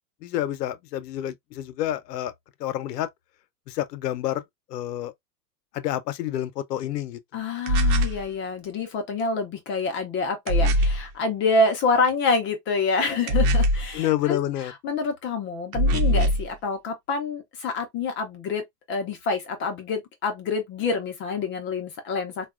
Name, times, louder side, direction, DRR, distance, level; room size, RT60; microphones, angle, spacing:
voice 1, 0.2-2.3 2.6-3.1 3.7-4.4 4.7-5.1 5.7-7.2 13.9-14.7, left 13 dB, 80° left, 0.7 m, -28 dB
voice 2, 7.3-22.5, left 3 dB, 25° left, 0.5 m, -27 dB
sound 1, 7.7-8.2 10.5-11.1 13.3-13.9 15.7-16.5, equal, 55° right, 0.9 m, -21 dB
4.0 x 2.3 x 2.4 m
supercardioid pair, 135°, 48 cm